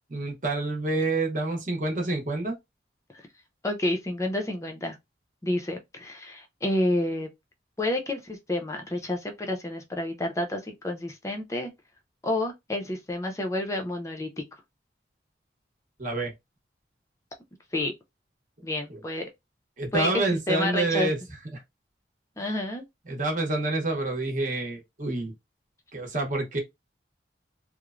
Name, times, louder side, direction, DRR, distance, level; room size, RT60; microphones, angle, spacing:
voice 1, 0.1-2.6 16.0-16.3 18.9-19.0 19.8-21.2 21.5-21.6 23.1-25.3 25.9-26.6, right 2 dB, 45° right, 0.8 m, -28 dB
voice 2, 3.6-5.0 5.4-7.3 7.8-11.7 12.2-14.4 17.7-17.9 18.6-19.3 19.9-21.1 22.4-22.8, left 1 dB, 15° left, 0.5 m, -29 dB
3.0 x 2.0 x 2.4 m
head